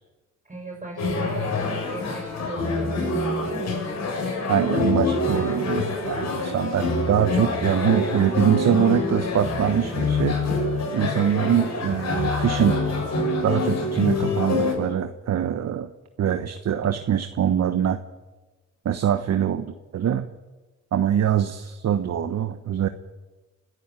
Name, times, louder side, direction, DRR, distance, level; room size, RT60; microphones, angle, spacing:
voice 1, 0.4-3.8, right 1 dB, 25° right, -1 dB, 6.8 m, -38 dB
sound 1, 1.0-14.7, left 3 dB, 60° left, 7.5 m, -26 dB
voice 2, 4.4-10.4 10.9-12.8 13.4-15.9 16.2-18.0 18.8-20.3 20.9-22.9, right 9 dB, 55° right, 8 dB, 1.2 m, -23 dB
29.5 x 12.5 x 9.0 m, 1.2 s
cardioid pair, 90°, 30 cm